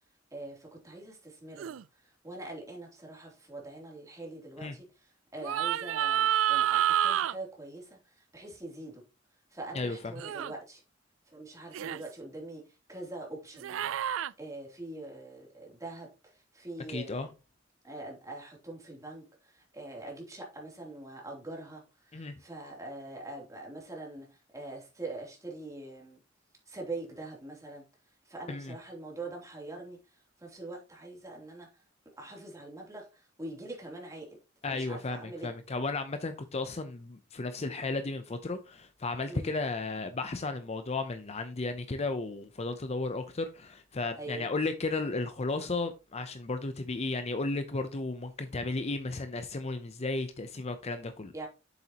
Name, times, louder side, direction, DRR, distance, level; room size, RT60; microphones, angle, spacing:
voice 1, 0.3-1.8 2.2-4.8 5.3-9.0 9.5-10.8 11.3-12.6 12.9-13.9 14.4-17.3 17.8-26.2 26.7-27.8 28.2-30.0 30.4-31.7 32.2-34.3 34.6-35.5 39.3-39.5 44.2-44.5 51.3-51.5, right 2 dB, 15° right, 3.0 m, -43 dB
sound 1, 1.6-1.8 5.4-7.3 10.2-10.5 11.7-12.0 13.6-14.3, right 11 dB, 85° right, 0.3 m, -28 dB
voice 2, 9.7-10.1 16.9-17.3 22.1-22.4 28.5-28.7 34.6-51.3, left 3 dB, 35° left, 0.6 m, -34 dB
8.0 x 7.0 x 2.9 m
head